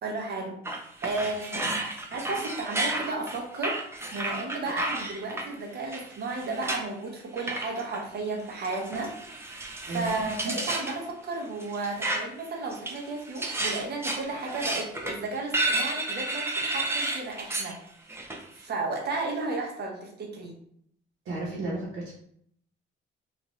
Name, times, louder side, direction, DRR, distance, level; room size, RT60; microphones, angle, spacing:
voice 1, 0.0-0.6 1.0-1.8 2.1-3.8 4.1-17.8 18.6-20.6, right 3 dB, 55° right, 1 dB, 0.8 m, -33 dB
sound 1, 0.6-5.4 5.9-6.8 7.4-8.0 8.6-11.0 11.6-12.4 12.7-17.7 18.1-18.4, right 2 dB, 10° right, 0.5 m, -32 dB
voice 2, 9.8-10.2 21.2-22.1, right 2 dB, 85° right, -7 dB, 0.9 m, -33 dB
2.5 x 2.5 x 3.1 m, 0.67 s
cardioid pair, 90°, 20 cm